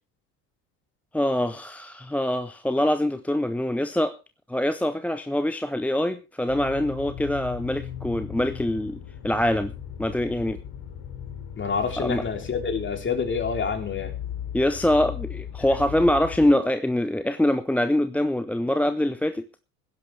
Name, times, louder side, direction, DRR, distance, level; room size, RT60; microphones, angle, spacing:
voice 1, 1.1-4.2 4.5-9.7 10.0-10.6 12.0-12.2 14.5-19.5, left 1 dB, 5° left, 12 dB, 0.6 m, -24 dB
sound 1, 6.5-16.5, left 9 dB, 50° left, 3.4 m, -37 dB
voice 2, 11.5-14.1, left 5 dB, 25° left, 5 dB, 3.4 m, -27 dB
20.5 x 11.0 x 3.4 m, 0.30 s
figure-of-eight pair, 70°, 46 cm